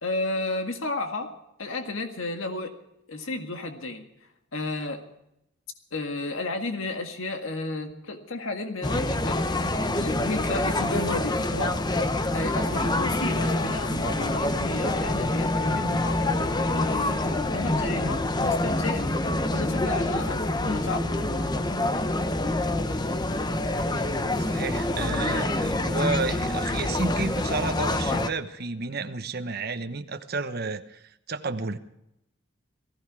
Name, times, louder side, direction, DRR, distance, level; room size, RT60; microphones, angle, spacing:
voice 1, 0.0-1.3 1.6-2.7 3.1-4.0 4.5-5.0 5.9-11.8 12.3-16.2 16.7-19.1 19.5-21.7, left 2 dB, 85° left, 5 dB, 1.9 m, -33 dB
sound 1, 8.8-28.3, left 2 dB, 20° left, 0.8 m, -26 dB
voice 2, 24.5-31.8, right 3 dB, 50° right, 8 dB, 1.0 m, -31 dB
19.0 x 15.0 x 4.8 m, 0.82 s
head